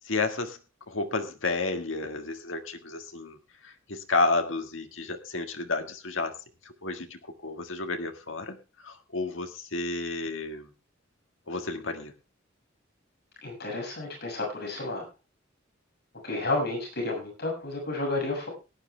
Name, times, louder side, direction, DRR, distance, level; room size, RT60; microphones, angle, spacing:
voice 1, 0.0-0.6 0.9-10.7 11.5-12.1, left 3 dB, 80° left, 6 dB, 1.7 m, -31 dB
voice 2, 13.4-15.0 16.2-18.5, left 2 dB, 55° left, 0 dB, 6.7 m, -31 dB
18.0 x 10.5 x 3.4 m, 0.29 s
head